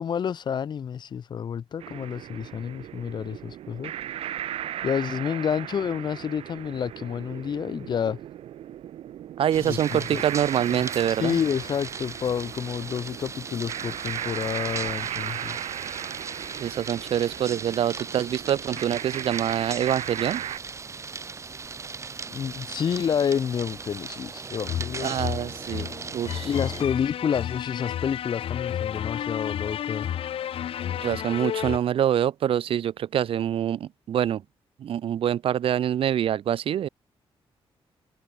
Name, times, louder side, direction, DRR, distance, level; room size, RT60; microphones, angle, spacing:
voice 1, 0.0-3.9 4.8-8.2 9.6-10.2 10.7-10.8 11.1-15.7 22.3-25.2 26.4-30.1, left 7 dB, 50° left, 1.4 m, -29 dB
sound 1, 1.8-20.6, right 11 dB, 90° right, 7.4 m, -37 dB
voice 2, 9.4-11.4 16.6-20.4 25.0-26.5 31.0-34.4 34.8-36.9, right 10 dB, 70° right, 2.9 m, -25 dB
sound 2, 9.5-26.8, right 4 dB, 30° right, 4.6 m, -38 dB
sound 3, 24.6-31.8, left 10 dB, 75° left, 6.9 m, -32 dB
cardioid pair, 135°, 10 cm